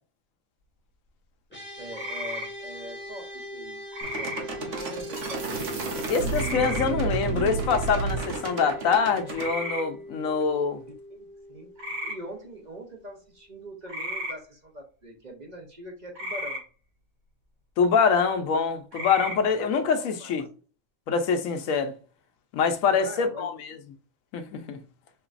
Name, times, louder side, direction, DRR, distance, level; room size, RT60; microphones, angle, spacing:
sound 1, 1.5-13.0, left 1 dB, 10° left, 1.8 m, -42 dB
voice 1, 1.8-3.8 4.1-5.5 11.1-16.6 19.4-19.9 20.2-20.3 22.9-23.5, right 1 dB, 35° right, 0.9 m, -42 dB
sound 2, 1.9-2.5 3.9-4.4 6.3-6.9 9.3-9.8 11.8-12.2 13.9-14.3 16.2-16.6 18.9-19.4, equal, 90° right, 2.9 m, -33 dB
sound 3, 4.0-9.5, right 4 dB, 65° right, 1.4 m, -31 dB
voice 2, 6.1-10.8 17.8-20.5 21.1-21.9 22.5-23.8 24.3-24.8, left 5 dB, 85° left, 1.1 m, -25 dB
5.5 x 2.9 x 2.5 m
omnidirectional pair, 1.4 m